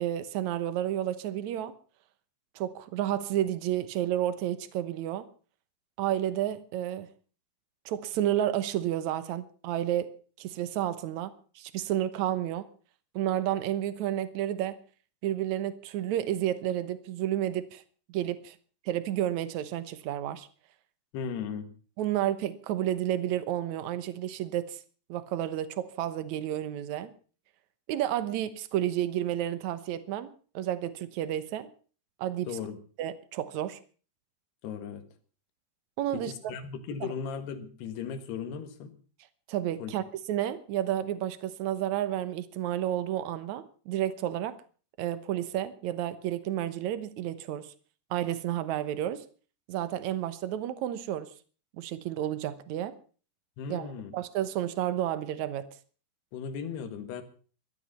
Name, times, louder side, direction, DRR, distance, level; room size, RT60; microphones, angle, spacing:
voice 1, 0.0-1.7 2.5-5.3 6.0-7.1 7.8-12.7 13.1-14.8 15.2-17.8 18.1-18.5 18.8-20.5 22.0-24.8 25.1-27.1 27.9-31.7 32.2-32.5 33.0-33.8 36.0-36.3 37.0-37.1 39.5-44.5 45.0-47.7 48.1-49.2 49.7-51.3 51.8-52.9 53.7-55.7, right 12 dB, 85° right, 13 dB, 1.6 m, -31 dB
voice 2, 21.1-21.7 32.5-32.8 34.6-35.0 36.1-38.9 39.8-39.9 53.6-54.1 56.3-57.2, left 7 dB, 75° left, 9 dB, 3.7 m, -37 dB
17.0 x 12.5 x 5.6 m, 0.40 s
omnidirectional pair, 4.9 m